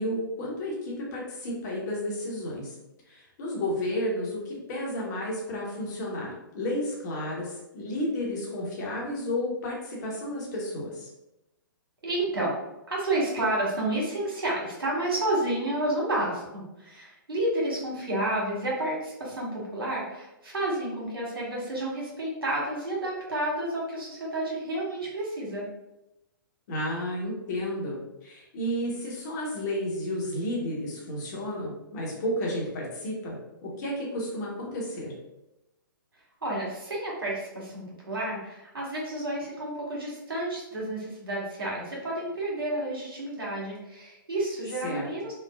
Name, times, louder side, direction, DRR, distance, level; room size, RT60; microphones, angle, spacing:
voice 1, 0.0-2.7 3.1-11.1 26.7-33.4 33.6-35.1 44.8-45.0, left 1 dB, 50° left, -3 dB, 1.0 m, -32 dB
voice 2, 12.0-12.5 12.9-25.7 36.4-45.4, right 1 dB, 85° right, -5 dB, 1.3 m, -30 dB
3.1 x 2.2 x 2.2 m, 0.94 s
hypercardioid pair, 120°, 12 cm